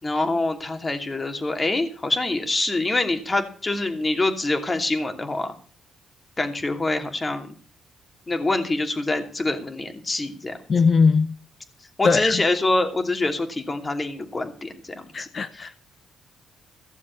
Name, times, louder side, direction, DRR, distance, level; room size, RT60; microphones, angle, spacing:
voice 1, 0.0-5.5 6.4-7.6 8.3-10.6 12.0-15.3 15.5-15.7, left 2 dB, 25° left, 2.8 m, -25 dB
voice 2, 10.7-11.3 12.0-12.4 15.1-15.8, left 5 dB, 45° left, 1.0 m, -20 dB
16.0 x 7.2 x 8.6 m
cardioid pair, 90°, 0 cm